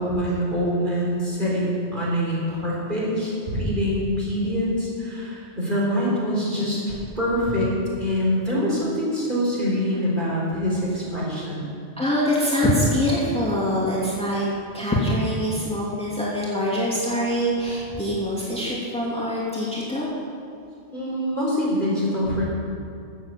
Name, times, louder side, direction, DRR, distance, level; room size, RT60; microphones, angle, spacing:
voice 1, 0.0-7.7 8.0-11.7 20.9-22.4, equal, 45° right, -6 dB, 4.1 m, -24 dB
voice 2, 12.0-14.5 14.7-20.1, equal, 5° left, -7 dB, 2.8 m, -24 dB
13.0 x 8.3 x 7.6 m, 2.4 s
omnidirectional pair, 1.2 m